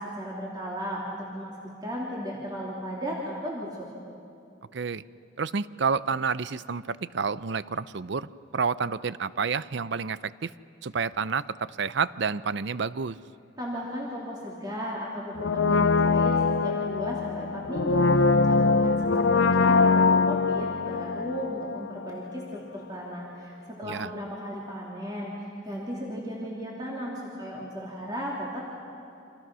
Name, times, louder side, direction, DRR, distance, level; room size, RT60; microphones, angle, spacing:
voice 1, 0.0-1.5 1.8-3.9 13.6-28.7, equal, 20° right, -4 dB, 3.2 m, -35 dB
voice 2, 4.7-5.0 5.4-10.5 10.8-13.2 23.8-24.1, right 5 dB, 60° right, 16 dB, 0.5 m, -29 dB
Brass instrument, 15.4-22.2 22.5-22.6, left 4 dB, 70° left, 0.6 m, -23 dB
29.5 x 26.5 x 6.3 m, 2.6 s
head